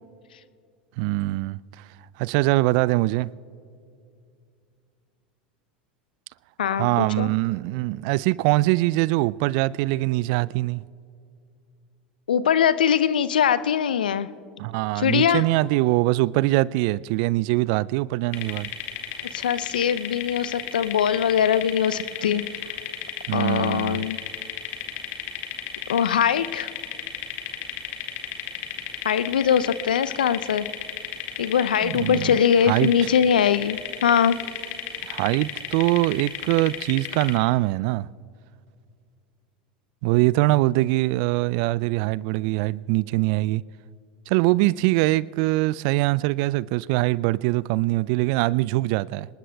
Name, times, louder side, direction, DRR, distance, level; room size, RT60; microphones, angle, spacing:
voice 1, 1.0-1.6 2.2-3.3 6.8-10.8 14.6-18.7 23.3-24.1 31.8-32.4 32.7-32.9 35.1-38.1 40.0-43.6 44.3-49.3, right 19 dB, 55° right, 0.3 m, -23 dB
voice 2, 6.6-7.3 12.3-14.3 15.0-15.4 19.3-22.7 23.3-24.2 25.9-26.7 29.0-30.7 31.4-34.4, left 8 dB, 75° left, 0.5 m, -22 dB
sound 1, 18.3-37.4, left 10 dB, 55° left, 2.0 m, -34 dB
26.5 x 20.0 x 2.3 m
figure-of-eight pair, 80°, 5 cm